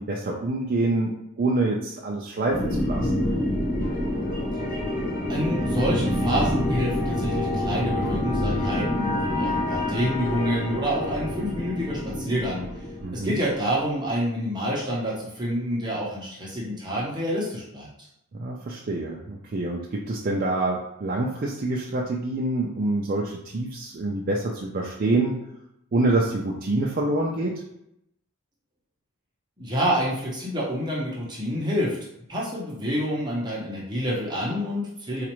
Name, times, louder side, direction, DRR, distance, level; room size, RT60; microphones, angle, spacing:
voice 1, 0.0-3.2 13.0-13.4 18.3-25.4 25.9-27.6, right 2 dB, 40° right, -2 dB, 0.4 m, -26 dB
sound 1, 2.5-13.9, left 1 dB, 40° left, 0.9 m, -27 dB
voice 2, 5.3-12.6 13.1-17.9 29.6-32.0 32.3-35.2, equal, 20° right, -6 dB, 0.8 m, -27 dB
4.1 x 2.5 x 3.0 m, 0.78 s
head